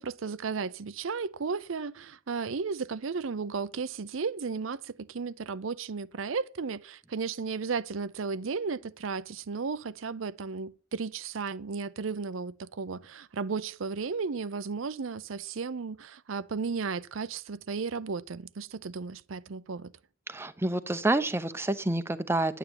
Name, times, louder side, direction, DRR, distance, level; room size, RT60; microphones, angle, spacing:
voice 1, 0.0-19.9, right 5 dB, 75° right, 0.6 m, -34 dB
voice 2, 20.3-22.6, right 2 dB, 10° right, 0.8 m, -28 dB
10.0 x 9.2 x 8.9 m
head